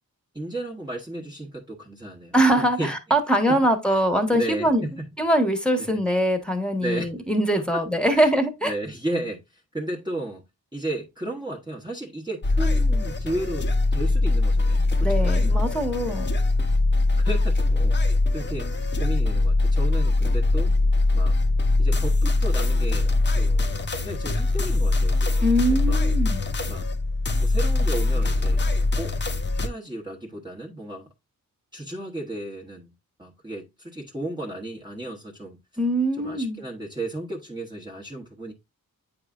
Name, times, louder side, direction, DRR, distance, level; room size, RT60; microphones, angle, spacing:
voice 1, 0.3-3.0 3.5-4.0 4.3-5.1 5.8-6.0 6.8-7.1 7.6-7.8 8.1-8.3 8.6-10.4 10.7-15.6 17.2-18.7 19.0-20.8 21.1-21.4 21.8-25.4 25.7-26.1 26.7-26.9 27.4-28.7 29.0-29.2 29.5-31.1 31.7-32.9 33.2-35.6 36.2-38.5, right 1 dB, 15° right, 1.1 m, -34 dB
voice 2, 2.3-4.8 5.2-8.7 15.0-16.3 25.4-26.4 35.8-36.6, right 1 dB, 5° left, 1.3 m, -22 dB
sound 1, 12.4-29.7, left 2 dB, 30° left, 0.8 m, -22 dB
8.5 x 4.8 x 2.4 m
wide cardioid pair, 90°, 34 cm